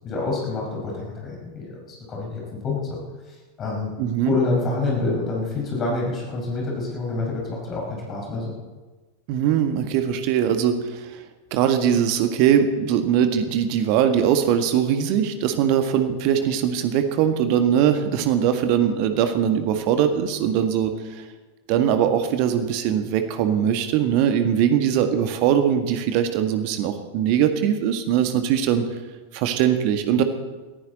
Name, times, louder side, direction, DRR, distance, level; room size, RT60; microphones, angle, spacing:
voice 1, 0.0-3.0 3.6-3.9 4.3-8.5, left 3 dB, 30° left, -2 dB, 5.3 m, -27 dB
voice 2, 4.0-4.4 9.3-11.2 11.5-21.2 21.7-28.8 29.3-30.2, right 9 dB, 45° right, 8 dB, 1.7 m, -21 dB
22.5 x 15.0 x 4.1 m, 1.3 s
figure-of-eight pair, 90°, 0 cm